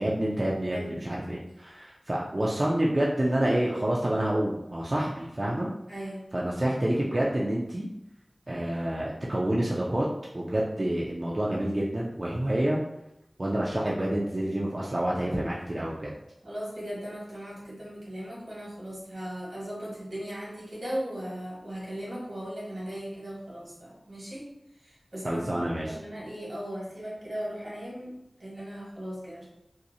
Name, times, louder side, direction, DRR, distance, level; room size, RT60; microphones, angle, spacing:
voice 1, 0.0-5.7 6.3-7.9 8.5-10.1 10.3-12.8 13.4-16.1 25.2-26.0, right 1 dB, 45° right, -5 dB, 0.4 m, -28 dB
voice 2, 0.7-1.0 5.9-6.2 16.4-24.4 24.8-25.5 25.8-29.4, equal, 80° right, -7 dB, 1.2 m, -38 dB
2.6 x 2.0 x 2.6 m, 0.87 s
wide cardioid pair, 50°, 0 cm